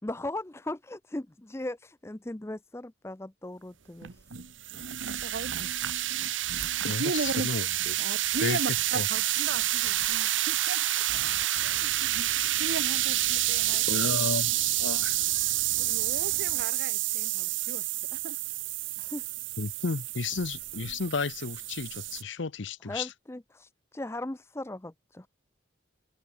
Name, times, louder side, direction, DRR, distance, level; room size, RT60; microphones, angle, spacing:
voice 1, 0.0-4.2 4.7-4.8 19.0-19.2 22.8-25.3, left 1 dB, 15° left, 0.5 m, -38 dB
sound 1, 4.0-22.2, right 15 dB, 75° right, 1.3 m, -29 dB
voice 2, 5.2-5.7 6.2-6.3 6.8-7.5 8.0-12.3 12.6-14.0 15.8-18.4, right 3 dB, 60° right, 0.7 m, -37 dB
voice 3, 6.8-7.9 8.4-8.6 8.9-9.1 13.9-15.2 19.6-23.1, left 4 dB, 70° left, 0.8 m, -33 dB
sound 2, 11.1-16.7, left 1 dB, 55° left, 5.9 m, -48 dB
open air
head